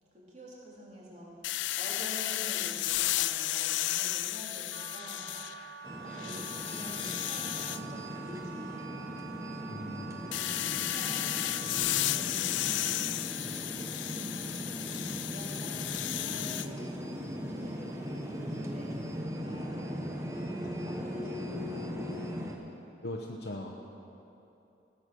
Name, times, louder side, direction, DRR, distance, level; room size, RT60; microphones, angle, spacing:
voice 1, 0.1-1.4 1.8-5.3 6.0-9.1 10.2-14.6 15.1-20.0 20.6-22.4, equal, 40° right, -5 dB, 3.2 m, -48 dB
sound 1, 1.4-5.7 6.1-7.8 10.3-16.7, left 15 dB, 85° left, 0.4 m, -33 dB
Wind instrument woodwind instrument, 4.7-12.3, right 8 dB, 75° right, 0.4 m, -47 dB
sound 2, 5.8-22.6, equal, 15° right, 1.0 m, -39 dB
voice 2, 9.7-10.2 23.0-23.8, left 1 dB, 70° left, -1 dB, 0.9 m, -39 dB
17.0 x 8.2 x 6.4 m, 2.8 s
head